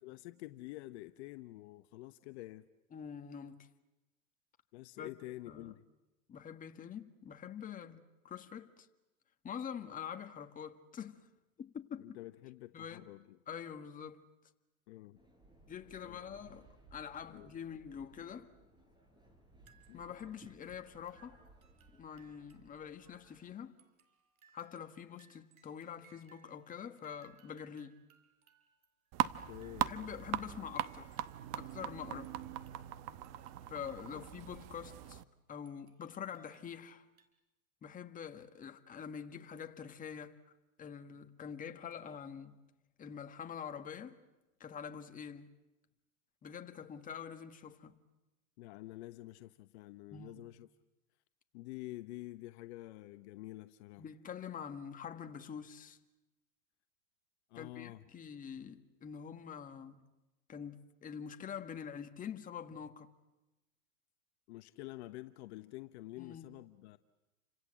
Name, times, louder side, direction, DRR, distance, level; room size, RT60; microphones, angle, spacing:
voice 1, 0.0-2.6 4.7-5.8 12.0-13.4 14.9-15.2 16.0-16.4 17.3-17.5 19.9-20.2 29.2-30.0 34.1-34.2 48.6-50.7 51.5-54.1 57.5-58.0 64.5-67.0, left 18 dB, 50° left, 1.1 m, -48 dB
voice 2, 2.9-3.7 5.0-5.1 5.5-5.7 6.3-8.9 9.4-11.3 11.6-12.2 12.7-13.1 13.5-14.2 15.7-18.5 19.9-21.4 22.0-23.7 24.5-28.0 29.8-31.2 31.5-32.3 33.7-35.2 35.5-37.0 37.8-40.4 40.8-42.6 43.0-44.2 44.6-45.5 46.4-48.0 50.1-50.4 54.0-56.0 57.5-60.0 60.5-63.1 66.2-66.5, left 7 dB, 20° left, 1.8 m, -45 dB
Subway metro underground, 15.1-23.5, right 1 dB, 10° right, 5.8 m, -62 dB
sound 1, 19.6-20.4 20.7-22.8 23.1-23.2 23.8-26.7 27.0-31.9 32.2-34.5 34.8-34.9 35.6-37.3, right 7 dB, 80° right, 4.5 m, -68 dB
sound 2, 29.1-35.2, right 14 dB, 40° right, 1.1 m, -40 dB
29.5 x 26.0 x 7.7 m
hypercardioid pair, 125°, 42 cm